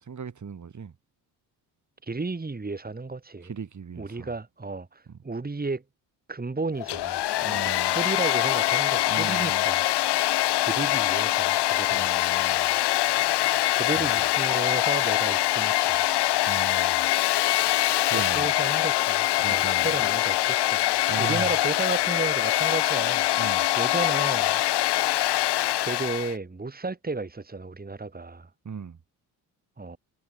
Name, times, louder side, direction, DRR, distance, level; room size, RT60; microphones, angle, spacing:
voice 1, 0.0-0.9 3.4-4.3 5.1-5.2 7.4-8.0 9.1-9.6 11.9-12.7 13.9-14.3 16.5-17.0 18.1-18.5 19.4-19.9 21.1-21.5 23.4-23.6 28.6-29.0, right 6 dB, 45° right, 4.7 m, -37 dB
voice 2, 2.0-3.5 4.0-5.8 6.3-9.8 10.6-12.1 13.8-16.1 18.1-23.3 23.8-24.6 25.8-28.5 29.8-30.0, right 3 dB, 20° right, 3.6 m, -33 dB
Domestic sounds home sounds, 6.8-26.3, left 15 dB, 70° left, 1.5 m, -24 dB
supercardioid pair, 60°, 41 cm